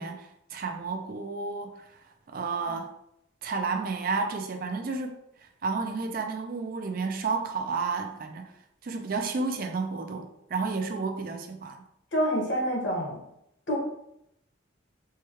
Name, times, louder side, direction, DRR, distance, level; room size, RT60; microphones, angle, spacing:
voice 1, 0.0-1.8 2.3-2.9 3.4-5.1 5.6-8.4 8.8-11.8, right 4 dB, 45° right, 4 dB, 0.4 m, -31 dB
voice 2, 12.1-13.2 13.7-13.8, equal, 65° left, -3 dB, 1.4 m, -27 dB
4.5 x 2.3 x 3.1 m, 0.79 s
head